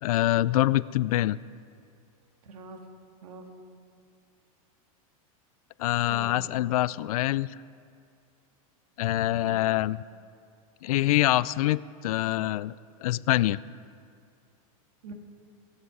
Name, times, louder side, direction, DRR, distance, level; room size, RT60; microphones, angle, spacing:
voice 1, 0.0-1.4 5.8-7.5 9.0-10.0 10.8-12.7 13.0-13.6, left 15 dB, 80° left, 19 dB, 0.4 m, -25 dB
voice 2, 2.4-2.8 3.2-3.5 6.1-6.7 9.2-9.5 15.0-15.1, right 3 dB, 80° right, 4 dB, 1.9 m, -44 dB
22.0 x 8.0 x 4.8 m, 2.4 s
supercardioid pair, 140°, 19 cm